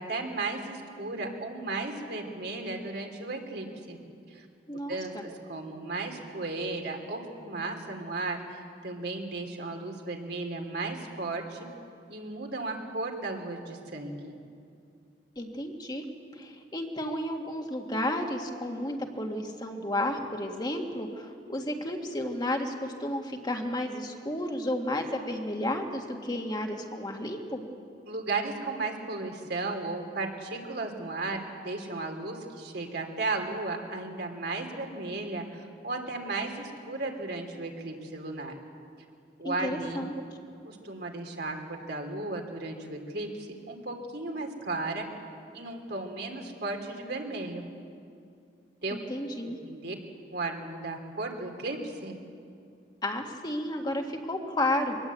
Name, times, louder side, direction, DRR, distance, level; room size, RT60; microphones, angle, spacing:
voice 1, 0.0-4.0 4.3-4.5 4.9-11.7 12.1-14.3 28.1-38.6 39.4-40.0 40.6-45.1 45.5-47.6 48.8-49.0 49.4-50.0 50.3-52.2, right 3 dB, 65° right, 3 dB, 3.0 m, -35 dB
voice 2, 4.7-5.2 15.4-16.0 16.3-27.6 39.4-40.1 48.9-49.6 53.0-55.0, left 1 dB, 25° left, 2 dB, 1.8 m, -32 dB
23.5 x 19.0 x 8.4 m, 2.4 s
head